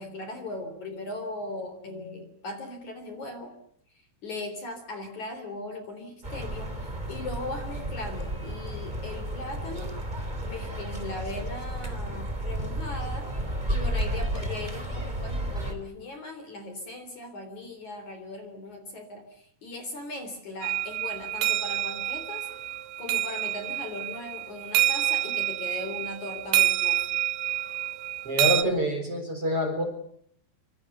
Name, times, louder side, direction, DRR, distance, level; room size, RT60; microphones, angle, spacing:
voice 1, 0.0-3.5 4.2-9.9 10.4-13.3 13.7-22.5 23.0-27.1, left 2 dB, 40° left, 7 dB, 4.5 m, -38 dB
sound 1, 6.2-15.7, right 1 dB, 10° right, 3.0 m, -32 dB
sound 2, 20.6-28.6, right 15 dB, 80° right, 4.0 m, -28 dB
voice 2, 28.2-29.8, equal, 30° right, 6 dB, 4.3 m, -26 dB
26.5 x 26.5 x 6.8 m, 0.66 s
omnidirectional pair, 5.9 m